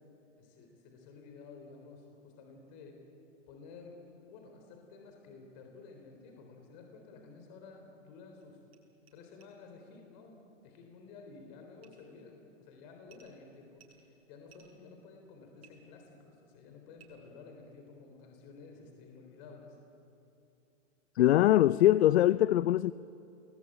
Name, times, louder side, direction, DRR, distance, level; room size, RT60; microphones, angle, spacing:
voice 1, 0.4-3.0 3.5-8.6 9.1-19.8, left 4 dB, 35° left, 3.9 m, -52 dB
sound 1, 8.4-8.5 8.7-8.8 9.1-9.2 9.4-9.5 11.8-12.1 13.1-13.4 13.7-14.8 15.6-15.7 16.9-17.1, right 9 dB, 55° right, 6.8 m, -61 dB
voice 2, 21.2-22.9, left 13 dB, 60° left, 0.5 m, -23 dB
29.0 x 21.0 x 8.7 m
hypercardioid pair, 155°, 36 cm